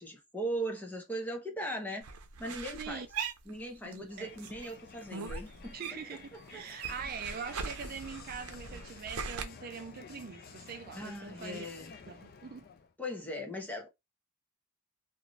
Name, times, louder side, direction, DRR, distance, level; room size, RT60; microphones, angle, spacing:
voice 1, 0.0-2.1 2.4-3.0 3.5-6.0 6.5-7.1 10.9-11.9 13.0-13.9, right 1 dB, 5° left, 0.6 m, -39 dB
sound 1, 2.0-4.1 4.4-6.2 6.5-9.4, right 5 dB, 85° right, 0.6 m, -41 dB
Crowd, 4.1-12.9, left 5 dB, 45° left, 0.4 m, -52 dB
voice 2, 5.7-11.7 12.1-12.7, right 6 dB, 45° right, 0.4 m, -43 dB
2.5 x 2.5 x 3.0 m
head